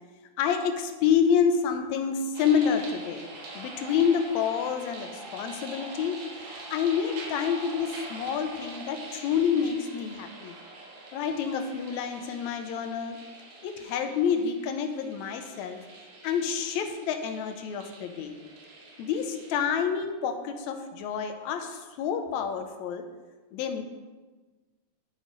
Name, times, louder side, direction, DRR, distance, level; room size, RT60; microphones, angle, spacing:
voice 1, 0.4-3.3 3.5-6.2 6.7-10.5 11.1-13.2 13.6-15.8 16.2-18.3 19.0-23.0 23.5-23.8, left 7 dB, 75° left, 6 dB, 1.9 m, -28 dB
sound 1, 2.3-19.5, right 2 dB, 90° right, 2.9 m, -44 dB
9.9 x 6.2 x 4.0 m, 1.3 s
omnidirectional pair, 3.5 m